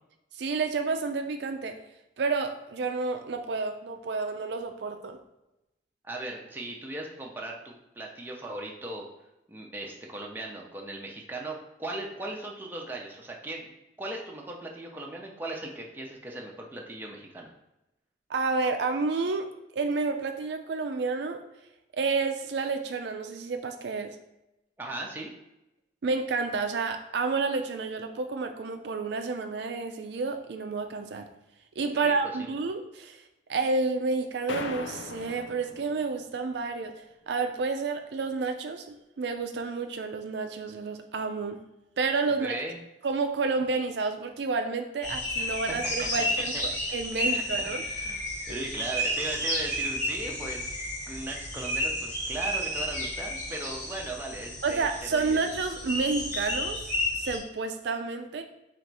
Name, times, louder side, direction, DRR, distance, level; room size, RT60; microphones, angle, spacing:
voice 1, 0.4-1.8 2.2-5.2 18.3-19.5 19.7-21.4 21.9-24.2 26.0-31.2 31.8-33.2 33.5-36.9 37.3-41.6 42.0-42.6 43.0-46.5 46.9-47.8 54.6-56.8 57.2-58.4, right 4 dB, 65° right, 6 dB, 0.4 m, -30 dB
voice 2, 6.0-9.0 9.5-13.7 14.0-17.5 24.8-25.3 32.0-32.5 42.4-42.8 45.4-45.8 46.5-46.6 47.2-50.7 51.1-55.5, right 2 dB, 10° right, -1 dB, 0.6 m, -38 dB
sound 1, 34.5-36.5, left 4 dB, 75° left, 0.4 m, -39 dB
sound 2, 45.0-57.4, left 1 dB, 40° left, 1.3 m, -32 dB
4.1 x 2.5 x 4.6 m, 0.92 s
head